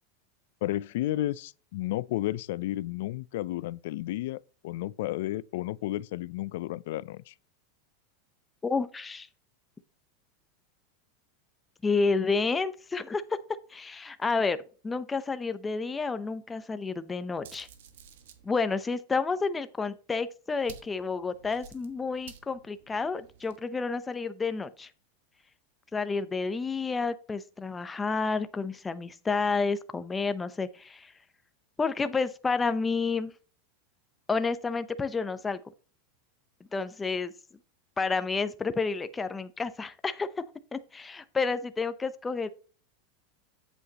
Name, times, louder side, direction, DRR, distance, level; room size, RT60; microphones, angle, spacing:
voice 1, 0.6-7.3, left 15 dB, 70° left, 0.4 m, -32 dB
voice 2, 8.6-9.3 11.8-13.2 13.7-14.6 14.8-17.7 18.4-24.9 25.9-31.1 31.8-33.3 34.3-35.6 36.7-37.3 38.0-40.3 40.7-42.5, left 4 dB, 15° left, 0.6 m, -30 dB
sound 1, 17.3-18.5 20.6-23.6, right 7 dB, 80° right, 1.3 m, -52 dB
8.2 x 7.9 x 2.9 m
supercardioid pair, 135°, 0 cm